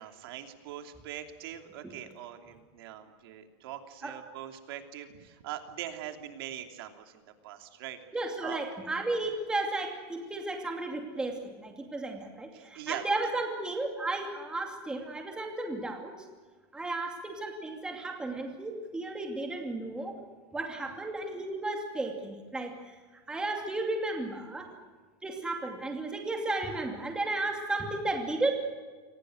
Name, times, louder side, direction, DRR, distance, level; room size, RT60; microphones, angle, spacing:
voice 1, 0.0-8.0 8.4-8.6 12.5-13.3, right 11 dB, 60° right, 5 dB, 3.0 m, -42 dB
voice 2, 8.1-16.1 16.7-20.2 20.5-23.0 23.3-24.7 25.2-28.5, right 2 dB, 5° right, 2 dB, 2.6 m, -34 dB
29.0 x 24.0 x 6.5 m, 1.5 s
supercardioid pair, 175°, 14 cm